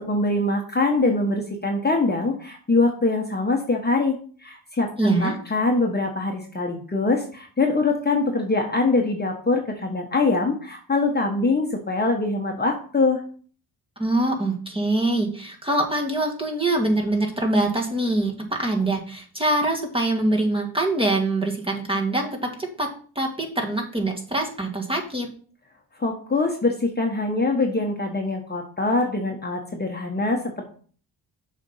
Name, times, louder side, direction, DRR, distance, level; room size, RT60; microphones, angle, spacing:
voice 1, 0.0-13.2 26.0-30.4, left 3 dB, 20° left, 2 dB, 1.3 m, -23 dB
voice 2, 5.0-5.4 14.0-22.9 23.1-25.3, right 2 dB, 10° right, 0 dB, 1.7 m, -24 dB
7.1 x 4.2 x 5.6 m, 0.43 s
cardioid pair, 105°, 46 cm